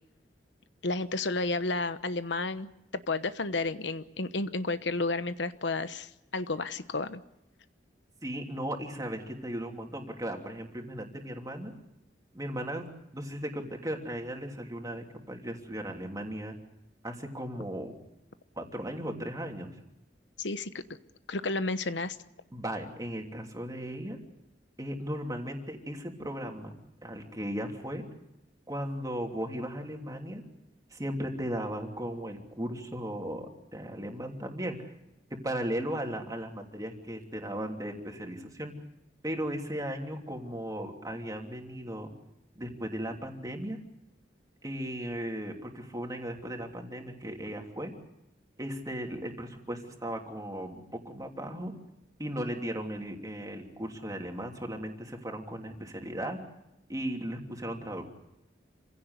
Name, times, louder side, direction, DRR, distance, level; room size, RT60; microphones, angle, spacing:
voice 1, 0.8-7.2 20.4-20.7 21.3-22.2, left 3 dB, 85° left, 12 dB, 1.0 m, -32 dB
voice 2, 8.2-11.7 12.3-12.9 13.1-16.5 17.0-17.9 18.6-19.7 22.5-24.2 24.8-26.8 27.0-28.0 28.7-30.4 30.9-34.8 35.4-38.7 39.2-42.1 42.6-43.8 44.6-47.9 48.6-51.7 52.2-56.4 56.9-58.1, equal, 20° right, 2 dB, 3.1 m, -36 dB
28.0 x 16.5 x 8.1 m, 0.87 s
head